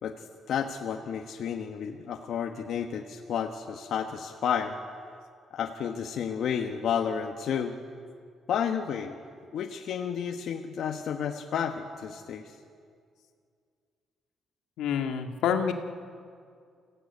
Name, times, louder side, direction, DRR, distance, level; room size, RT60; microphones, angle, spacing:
voice 1, 0.0-4.8 5.5-7.8 8.5-9.2 9.5-12.5, left 7 dB, 70° left, 3 dB, 1.3 m, -31 dB
voice 2, 14.8-15.7, left 8 dB, 85° left, 5 dB, 1.8 m, -27 dB
24.5 x 16.0 x 9.6 m, 2.2 s
cardioid pair, 90°, 0 cm